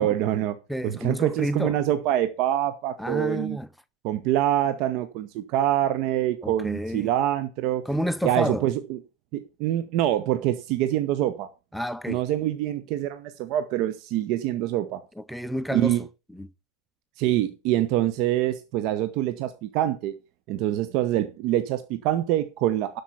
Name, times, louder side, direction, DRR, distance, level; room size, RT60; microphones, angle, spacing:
voice 1, 0.0-0.6 0.8-3.6 4.0-7.8 8.2-9.0 9.3-11.5 12.1-15.0 15.7-16.0 17.2-20.1 20.5-23.0, right 12 dB, 40° right, 0.8 m, -25 dB
voice 2, 0.7-1.7 3.0-3.7 6.4-7.1 7.9-8.6 11.7-12.2 15.2-16.0 16.3-16.5, equal, ahead, 0.5 m, -29 dB
11.5 x 6.9 x 5.6 m
figure-of-eight pair, 90°, 0 cm